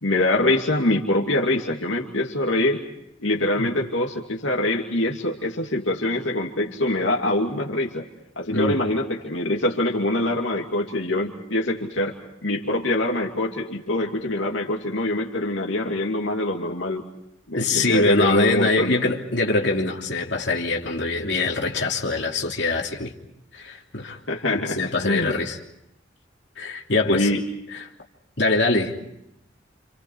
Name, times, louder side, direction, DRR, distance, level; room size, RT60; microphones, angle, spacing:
voice 1, 0.0-2.8 3.2-8.1 8.4-12.2 12.4-17.0 17.5-19.0 24.3-24.8 25.0-25.3 27.1-27.4, left 1 dB, 85° left, 0 dB, 2.5 m, -24 dB
voice 2, 17.5-23.1 23.5-24.2 24.5-25.6 26.6-27.3 28.4-29.0, left 2 dB, 65° left, 0 dB, 3.1 m, -23 dB
29.0 x 28.0 x 4.8 m, 0.82 s
head